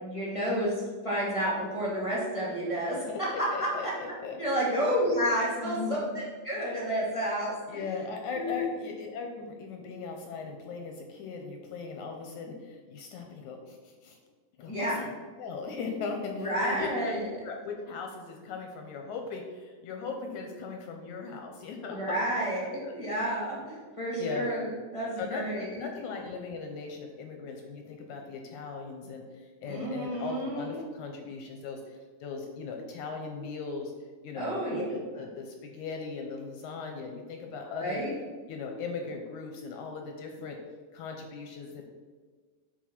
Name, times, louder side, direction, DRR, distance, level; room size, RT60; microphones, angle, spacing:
voice 1, 0.0-3.0 3.4-3.9 4.4-7.9 8.3-8.7 14.7-15.0 16.3-17.2 21.9-25.8 29.6-30.8 34.3-34.8 37.6-38.1, equal, 20° left, -5 dB, 0.8 m, -30 dB
voice 2, 3.5-4.4 5.6-6.1 7.7-14.2 14.6-15.1 15.4-22.2 22.6-22.9 24.2-24.5 25.2-33.9 34.2-38.0 38.5-40.6 40.9-41.8, left 4 dB, 75° left, 3 dB, 1.9 m, -38 dB
7.2 x 4.5 x 5.9 m, 1.5 s
omnidirectional pair, 3.8 m